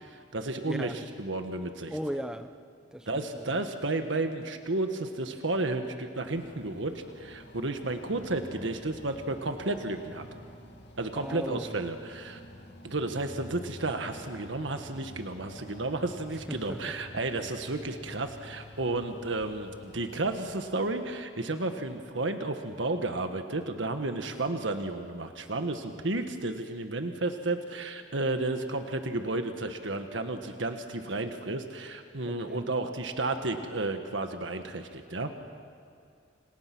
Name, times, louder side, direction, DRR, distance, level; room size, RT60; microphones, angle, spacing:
voice 1, 0.0-1.9 3.1-10.2 11.0-12.4 12.8-35.3, right 2 dB, 80° right, 6 dB, 1.5 m, -32 dB
voice 2, 0.6-1.0 1.9-2.5 2.9-3.6 8.1-8.8 11.2-11.8 16.5-17.0 32.2-32.6, equal, 5° right, 8 dB, 1.0 m, -38 dB
sound 1, 6.3-20.9, left 1 dB, 60° left, 2.7 m, -49 dB
29.5 x 27.5 x 6.1 m, 2.4 s
head